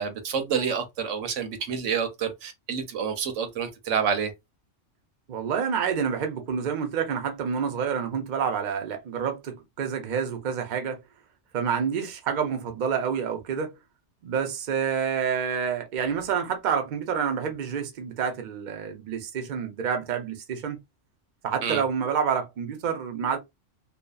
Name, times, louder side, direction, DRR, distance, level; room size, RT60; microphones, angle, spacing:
voice 1, 0.0-4.3 21.6-21.8, right 6 dB, 80° right, 1.0 m, -28 dB
voice 2, 5.3-11.0 11.5-13.7 14.2-20.8 21.4-23.4, right 7 dB, 50° right, 0.6 m, -28 dB
2.7 x 2.2 x 2.3 m
omnidirectional pair, 1.3 m